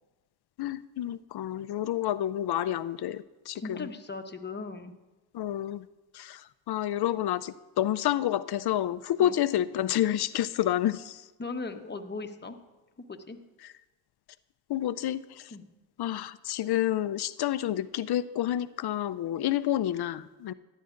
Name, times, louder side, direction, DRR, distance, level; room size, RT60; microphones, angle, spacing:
voice 1, 0.6-3.9 5.3-5.8 6.1-6.4 6.7-11.2 14.7-15.2 16.0-20.5, left 12 dB, 55° left, 15 dB, 0.6 m, -29 dB
voice 2, 3.5-4.9 9.2-9.4 11.4-12.6 13.1-13.4 15.5-15.7, left 3 dB, 20° left, 6 dB, 1.0 m, -38 dB
15.0 x 10.0 x 2.6 m, 1.1 s
supercardioid pair, 65°, 46 cm